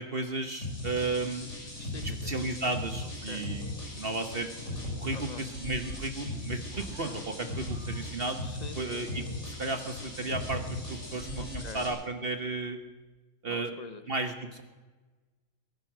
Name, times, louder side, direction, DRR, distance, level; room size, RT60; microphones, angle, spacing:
voice 1, 0.0-1.5 2.2-3.7 4.0-4.5 5.0-8.4 8.8-12.8 13.4-13.7 14.1-14.6, right 3 dB, 40° right, 7 dB, 1.2 m, -34 dB
sound 1, 0.6-11.9, left 1 dB, 50° left, 5.7 m, -38 dB
voice 2, 1.8-2.3 3.0-3.5 5.1-5.4 8.4-9.0 11.4-11.8 13.5-14.0, left 3 dB, 30° left, 10 dB, 1.0 m, -45 dB
sound 2, 2.7-4.7 5.8-8.9 10.7-12.7, right 2 dB, 75° right, 5.7 m, -54 dB
21.0 x 11.0 x 6.1 m, 1.2 s
omnidirectional pair, 1.6 m